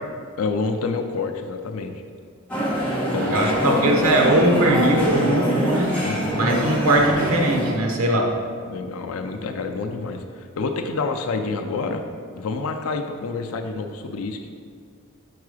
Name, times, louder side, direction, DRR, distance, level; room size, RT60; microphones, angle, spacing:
voice 1, 0.4-1.9 3.1-4.1 6.0-6.4 8.7-12.1 12.3-14.5, left 4 dB, 80° left, 6 dB, 0.4 m, -28 dB
sound 1, 2.5-7.7, equal, 5° left, 1.1 m, -24 dB
voice 2, 3.3-6.0 6.3-8.3, right 1 dB, 80° right, 1 dB, 0.9 m, -20 dB
4.8 x 4.7 x 4.8 m, 2.1 s
head